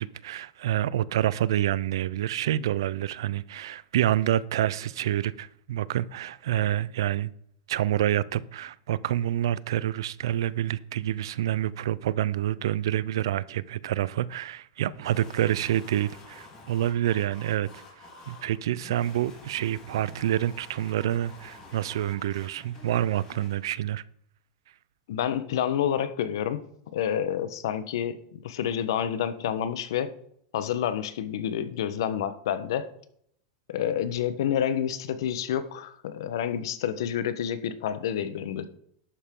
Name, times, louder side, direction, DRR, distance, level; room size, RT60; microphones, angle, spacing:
voice 1, 0.0-7.3 7.7-17.7 18.0-24.0, right 12 dB, 80° right, 0.6 m, -27 dB
sound 1, 14.9-23.6, left 2 dB, 30° left, 4.3 m, -49 dB
voice 2, 25.1-26.6 26.9-30.1 30.5-32.9 33.7-38.7, left 9 dB, 75° left, 1.1 m, -29 dB
11.5 x 8.6 x 3.8 m
supercardioid pair, 145°, 2 cm